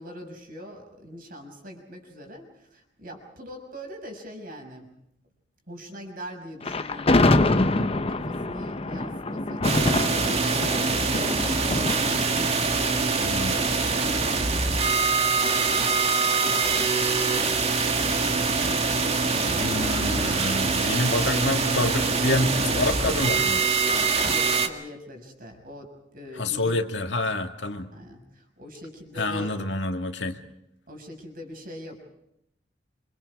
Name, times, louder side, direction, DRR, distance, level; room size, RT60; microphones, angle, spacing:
voice 1, 0.0-4.9 5.7-12.7 12.9-15.8 16.2-19.3 24.2-26.8 27.9-29.6 30.9-32.0, equal, 50° right, 3 dB, 6.2 m, -42 dB
Thunder, 6.6-13.8, left 2 dB, 30° left, 0.9 m, -25 dB
sound 1, 9.6-24.7, right 4 dB, 35° right, 2.0 m, -24 dB
voice 2, 13.2-13.6 19.4-23.6 26.4-27.9 29.2-30.4, left 1 dB, 70° left, 5 dB, 2.3 m, -27 dB
27.5 x 25.5 x 4.9 m, 0.80 s
head